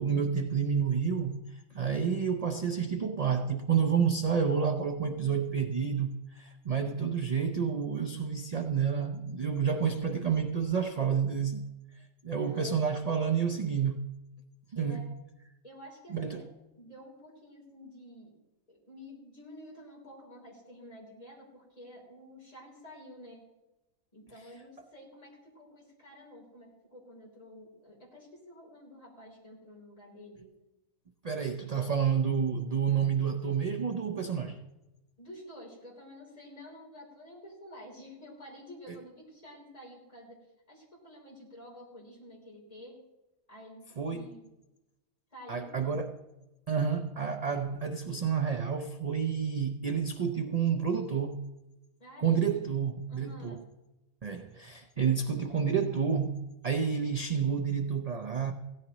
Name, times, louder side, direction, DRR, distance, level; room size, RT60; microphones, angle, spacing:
voice 1, 0.0-1.5 1.7-11.7 12.2-14.1 14.7-15.1 16.1-16.4 31.2-34.6 44.0-44.3 45.5-46.2 46.7-51.4 52.2-53.6 54.2-58.5, right 6 dB, 45° right, 0.5 m, -29 dB
voice 2, 12.4-12.8 14.8-15.1 15.6-16.5 16.7-18.4 18.7-23.4 24.1-30.5 35.2-43.0 43.5-44.5 45.3-45.9 52.0-52.8 53.1-53.6, equal, 25° left, 3.9 m, -50 dB
16.5 x 13.5 x 3.0 m
omnidirectional pair, 1.5 m